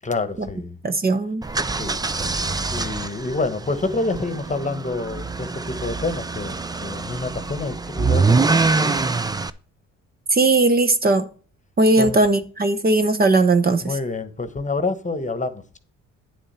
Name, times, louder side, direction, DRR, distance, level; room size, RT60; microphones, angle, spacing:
voice 1, 0.0-0.8 1.8-2.0 2.7-9.0 12.0-12.2 13.8-15.8, left 3 dB, 25° left, 1.2 m, -27 dB
voice 2, 0.8-1.4 10.3-11.3 11.8-13.9, right 2 dB, 30° right, 1.0 m, -18 dB
sound 1, 1.4-9.5, right 4 dB, 15° right, 0.5 m, -24 dB
9.6 x 7.2 x 4.3 m
cardioid pair, 90°, 30 cm